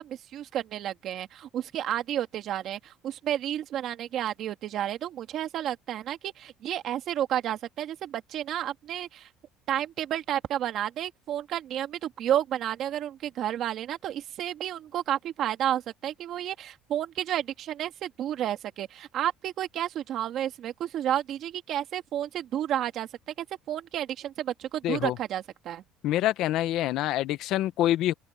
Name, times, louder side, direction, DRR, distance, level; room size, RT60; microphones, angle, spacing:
voice 1, 0.0-9.3 9.7-25.8, right 11 dB, 50° right, 2.1 m, -31 dB
voice 2, 24.8-25.2 26.0-28.1, left 13 dB, 60° left, 0.8 m, -26 dB
cardioid pair, 155°, 0 cm